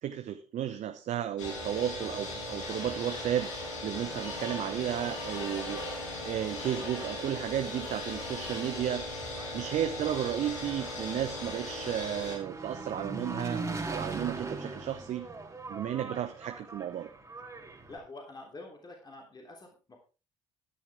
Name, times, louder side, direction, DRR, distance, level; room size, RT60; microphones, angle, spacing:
voice 1, 0.0-3.5 3.8-5.8 6.2-9.0 9.5-13.6 13.9-15.3 15.7-17.1, right 10 dB, 50° right, 7 dB, 1.1 m, -33 dB
sound 1, 1.4-12.4, left 1 dB, 85° left, 3.7 m, -38 dB
Engine, 9.1-18.0, right 3 dB, 20° right, 2.9 m, -40 dB
voice 2, 17.9-20.0, left 2 dB, 25° left, 1 dB, 3.5 m, -47 dB
14.0 x 10.0 x 3.6 m, 0.33 s
hypercardioid pair, 55°, 16 cm